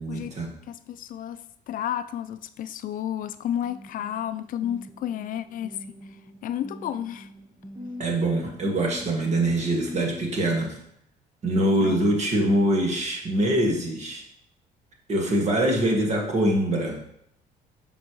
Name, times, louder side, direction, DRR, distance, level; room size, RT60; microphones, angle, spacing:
voice 1, 0.0-0.5 8.0-10.8 11.4-14.2 15.1-17.0, right 1 dB, 40° right, 1 dB, 1.7 m, -24 dB
voice 2, 0.7-5.8 6.4-7.3 11.8-12.0 15.4-15.5, left 10 dB, 55° left, 12 dB, 0.4 m, -32 dB
sound 1, 3.6-10.5, left 1 dB, 15° right, 0.8 m, -43 dB
7.4 x 5.5 x 3.1 m, 0.69 s
cardioid pair, 110°, 17 cm